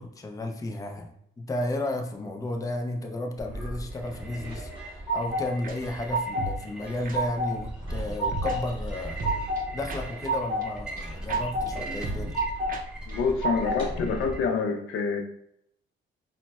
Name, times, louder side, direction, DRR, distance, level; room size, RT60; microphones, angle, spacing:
voice 1, 0.0-9.2 9.7-12.4, left 1 dB, 15° left, 4 dB, 0.4 m, -33 dB
sound 1, 3.4-14.4, right 1 dB, 5° right, 0.8 m, -38 dB
sound 2, 4.4-5.5 5.8-6.5 6.8-7.5 7.9-8.6 8.9-9.6 10.0-10.6 11.0-11.7 12.0-12.7 13.1-13.9, right 1 dB, 25° right, 1.3 m, -29 dB
sound 3, 5.6-5.8 6.4-6.6 7.0-7.2 8.3-8.6 9.2-10.3 10.6-10.7 11.0-11.1 11.3-11.4 11.7-11.8 12.0-12.4 12.7-12.8 13.1-13.2 13.4-13.5, right 3 dB, 45° right, 0.5 m, -34 dB
voice 2, 13.1-15.2, left 5 dB, 80° left, 4 dB, 0.5 m, -27 dB
3.8 x 2.1 x 2.2 m, 0.74 s
cardioid pair, 90°, 20 cm